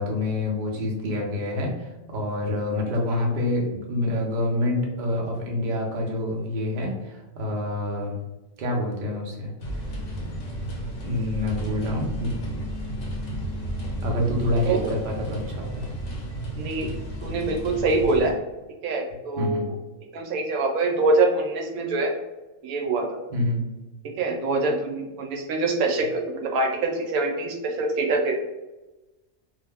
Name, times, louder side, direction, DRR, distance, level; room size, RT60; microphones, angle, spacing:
voice 1, 0.0-8.1 8.6-9.5 9.8-9.9 11.0-12.3 14.0-15.9 19.4-19.7 23.3-23.6, left 1 dB, 55° right, 0 dB, 0.5 m, -27 dB
sound 1, 9.6-18.3, right 1 dB, 65° left, 1.0 m, -32 dB
voice 2, 16.5-16.9 17.2-18.3 18.8-19.7 20.1-22.1 22.6-23.2 24.2-28.3, right 3 dB, 80° right, 2 dB, 1.0 m, -24 dB
2.5 x 2.1 x 3.4 m, 1.1 s
omnidirectional pair, 1.5 m